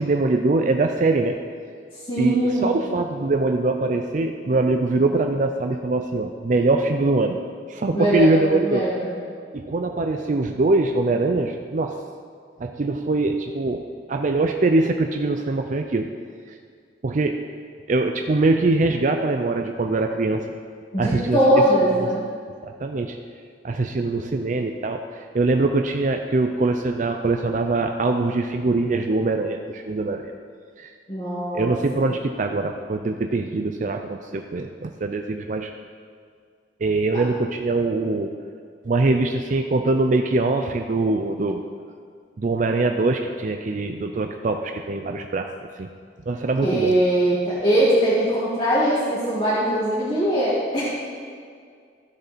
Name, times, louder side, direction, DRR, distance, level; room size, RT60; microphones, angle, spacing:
voice 1, 0.0-1.4 2.2-7.4 7.7-8.9 9.5-12.0 12.6-16.1 17.0-17.4 17.9-20.5 21.0-22.1 22.6-23.2 23.6-30.3 30.8-30.9 31.5-35.7 36.8-38.3 38.9-41.6 42.4-45.5 45.8-45.9 46.3-47.0, right 2 dB, 45° right, 5 dB, 0.4 m, -23 dB
voice 2, 2.1-2.8 7.9-9.1 20.9-22.3 31.1-32.0 37.1-37.2 46.6-51.0, right 1 dB, 30° left, -9 dB, 1.9 m, -21 dB
14.5 x 6.6 x 4.1 m, 2.1 s
head